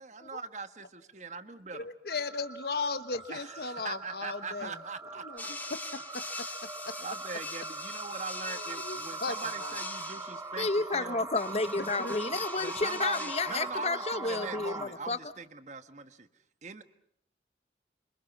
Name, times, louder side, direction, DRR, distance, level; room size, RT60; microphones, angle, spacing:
voice 1, 0.0-1.9 3.3-5.5 6.3-6.5 7.0-11.2 12.6-16.3 16.6-16.8, right 4 dB, 40° right, 10 dB, 1.4 m, -41 dB
voice 2, 1.7-4.8 5.2-6.0 6.9-7.0 8.5-9.3 9.6-9.8 12.0-12.2, left 4 dB, 60° left, 10 dB, 1.1 m, -36 dB
sound 1, 2.1-14.9, right 3 dB, 15° right, 1.6 m, -41 dB
sound 2, 5.4-10.5 11.4-13.7, left 3 dB, 10° left, 2.1 m, -42 dB
voice 3, 10.6-15.3, left 3 dB, 35° left, 12 dB, 1.1 m, -31 dB
29.5 x 26.0 x 6.0 m, 0.70 s
head